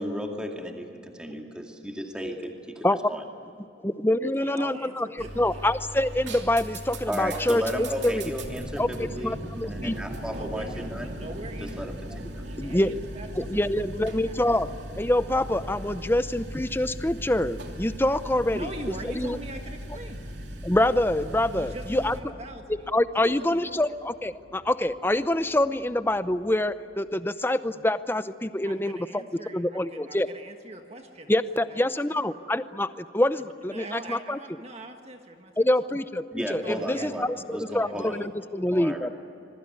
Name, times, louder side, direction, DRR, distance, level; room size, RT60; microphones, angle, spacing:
voice 1, 0.0-3.2 7.1-9.4 9.6-11.1 11.6-12.5 36.3-38.3 38.7-39.1, equal, 5° right, 2 dB, 2.3 m, -34 dB
voice 2, 3.8-8.2 8.8-10.0 12.6-12.9 13.4-14.7 15.0-18.7 19.0-19.4 20.6-22.2 22.9-29.2 29.5-30.3 31.3-34.4 35.6-38.2 38.5-39.1, left 1 dB, 10° left, 12 dB, 0.7 m, -26 dB
voice 3, 4.4-5.6 7.2-7.4 7.7-8.1 8.4-8.5 9.0-9.3 10.2-11.9 12.4-14.3 18.5-20.2 21.6-22.9 23.2-23.8 28.6-31.9 33.4-35.5 35.8-35.9 36.6-37.2 37.7-37.9, right 1 dB, 35° right, 4 dB, 1.6 m, -42 dB
sound 1, 5.2-22.2, right 1 dB, 65° right, 2.9 m, -38 dB
sound 2, 18.7-28.8, equal, 85° left, 6.6 m, -57 dB
27.0 x 22.0 x 9.7 m, 2.8 s
head